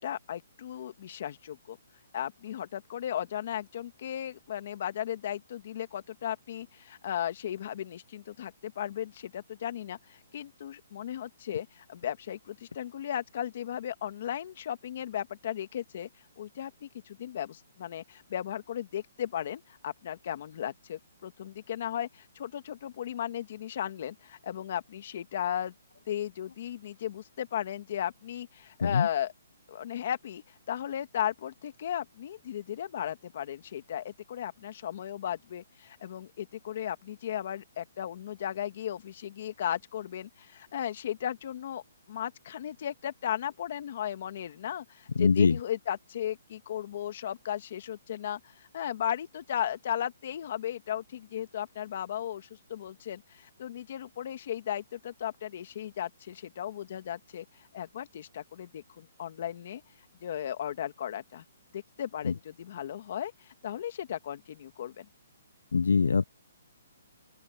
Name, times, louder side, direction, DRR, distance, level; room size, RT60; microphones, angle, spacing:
voice 1, 0.0-1.8 2.1-16.1 16.4-25.7 26.1-29.3 29.7-41.8 42.1-59.8 60.2-61.4 61.7-65.1, left 10 dB, 45° left, 1.9 m, -36 dB
voice 2, 45.2-45.6 62.2-62.3 65.7-66.2, left 5 dB, 85° left, 0.3 m, -23 dB
open air
hypercardioid pair, 170°, 0 cm